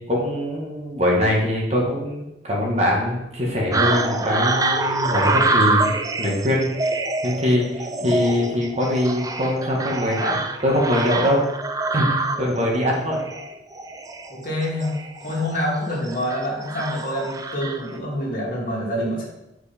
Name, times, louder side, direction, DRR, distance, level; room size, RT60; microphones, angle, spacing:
voice 1, 0.0-6.9 7.2-11.4 11.9-13.2, left 1 dB, 35° right, -3 dB, 1.7 m, -22 dB
sound 1, 3.7-18.0, right 3 dB, 20° right, 0.4 m, -26 dB
voice 2, 14.3-14.9 15.2-19.2, equal, 45° left, -4 dB, 2.4 m, -26 dB
7.9 x 4.8 x 4.4 m, 0.93 s
head